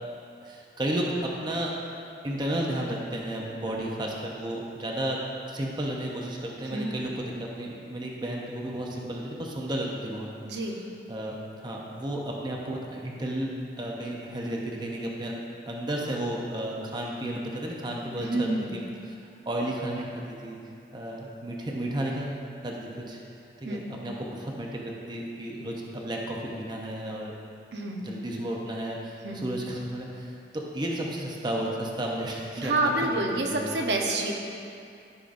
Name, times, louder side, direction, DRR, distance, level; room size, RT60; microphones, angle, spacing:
voice 1, 0.4-1.7 2.2-5.2 5.5-10.8 11.1-13.5 13.8-19.2 19.5-20.6 20.9-23.2 23.6-27.3 28.0-33.7, right 1 dB, 25° right, -2 dB, 0.7 m, -33 dB
voice 2, 10.4-10.8 18.2-18.7 23.6-23.8 27.7-28.0 29.2-29.4 32.6-34.3, right 2 dB, 70° right, 0 dB, 0.9 m, -28 dB
13.5 x 5.6 x 2.6 m, 2.5 s
head